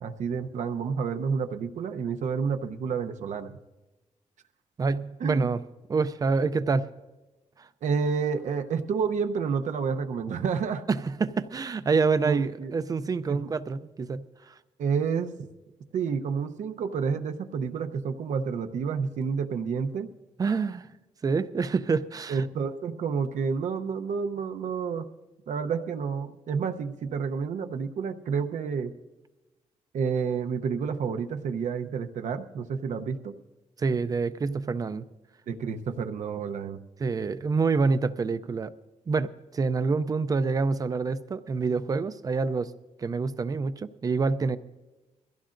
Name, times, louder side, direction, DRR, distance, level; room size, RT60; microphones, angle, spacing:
voice 1, 0.0-3.5 5.2-5.5 7.8-10.8 12.2-12.7 13.3-13.5 14.8-15.5 15.9-20.1 22.3-25.1 25.5-28.9 29.9-33.3 35.5-36.8, right 6 dB, 75° right, 7 dB, 0.8 m, -29 dB
voice 2, 4.8-5.6 5.9-6.9 7.6-7.7 10.9-14.5 20.4-20.9 21.2-22.4 33.8-35.0 37.0-38.7 39.1-42.7 43.0-44.6, right 4 dB, 30° right, 13 dB, 0.4 m, -27 dB
22.5 x 16.0 x 2.5 m, 1.1 s
wide cardioid pair, 175°, 12 cm